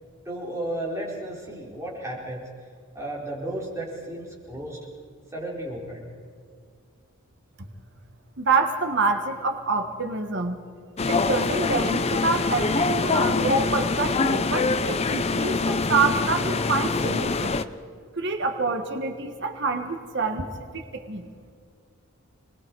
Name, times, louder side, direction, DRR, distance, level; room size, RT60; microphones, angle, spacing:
voice 1, 0.2-2.4 2.9-4.8 5.3-6.1, right 1 dB, 15° right, -4 dB, 4.5 m, -33 dB
voice 2, 8.4-10.6 11.1-17.6 18.2-20.5 20.7-21.3, right 3 dB, 55° right, 5 dB, 1.5 m, -26 dB
sound 1, 11.0-17.6, left 3 dB, 30° left, 0.6 m, -24 dB
29.0 x 20.5 x 4.7 m, 2.2 s
head